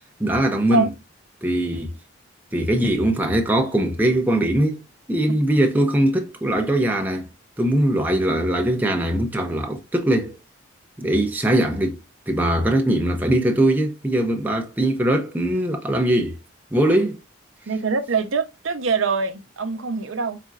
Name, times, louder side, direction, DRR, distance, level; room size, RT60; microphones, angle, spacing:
voice 1, 0.2-0.9 1.4-1.9 2.5-4.8 5.1-7.3 7.6-10.4 11.0-12.0 12.3-16.4 16.7-17.2, right 1 dB, 10° right, 0.6 m, -21 dB
voice 2, 17.7-20.4, right 4 dB, 80° right, 0.7 m, -24 dB
4.2 x 3.8 x 2.4 m
head